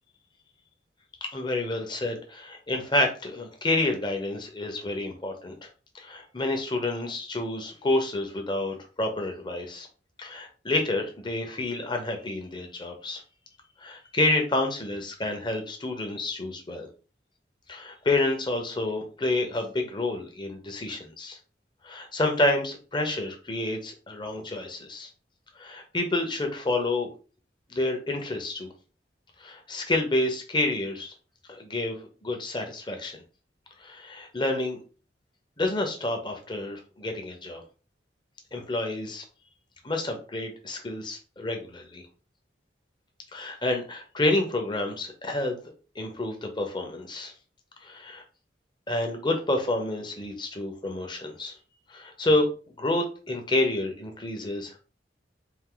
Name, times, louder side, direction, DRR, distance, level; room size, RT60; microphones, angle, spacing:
voice 1, 1.3-5.7 5.9-9.9 10.2-13.2 13.8-16.9 17.7-21.4 21.8-25.1 25.6-27.1 27.7-28.7 29.4-31.1 31.5-33.2 33.8-34.8 35.6-37.6 38.5-39.2 39.8-42.0 43.3-45.6 45.9-47.3 47.8-48.2 48.9-51.5 51.9-52.5 52.8-54.8, left 2 dB, 25° left, 3 dB, 1.0 m, -29 dB
4.4 x 2.7 x 3.8 m, 0.35 s
head